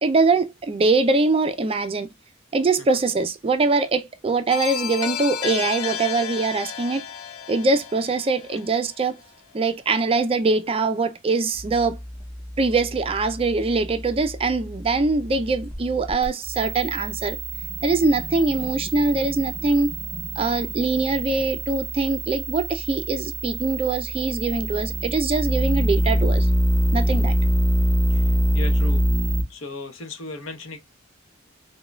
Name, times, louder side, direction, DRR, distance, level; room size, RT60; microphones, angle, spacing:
voice 1, 0.0-2.1 2.5-7.0 7.5-9.2 9.5-12.0 12.6-17.4 17.8-19.9 20.4-26.5 26.9-27.3, right 3 dB, 30° right, 0.4 m, -23 dB
sound 1, 4.5-9.3, left 9 dB, 90° left, 0.5 m, -32 dB
sound 2, 11.5-29.4, equal, 5° left, 0.8 m, -26 dB
voice 2, 28.5-29.0 29.5-30.8, left 2 dB, 70° left, 0.9 m, -36 dB
5.1 x 2.2 x 2.2 m
head